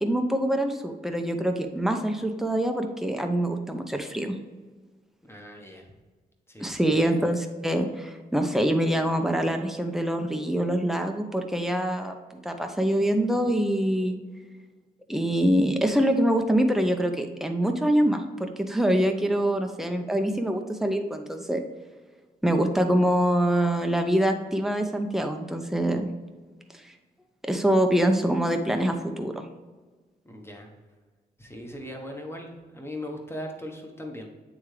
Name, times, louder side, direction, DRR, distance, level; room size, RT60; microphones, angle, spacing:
voice 1, 0.0-4.4 6.6-14.2 15.1-21.6 22.4-26.1 27.5-29.4, right 1 dB, ahead, 4 dB, 0.8 m, -25 dB
voice 2, 5.2-5.9 6.5-6.8 30.2-30.7 31.4-34.3, left 1 dB, 15° left, 2 dB, 1.3 m, -39 dB
8.5 x 3.6 x 3.3 m, 1.3 s
cardioid pair, 75°, 18 cm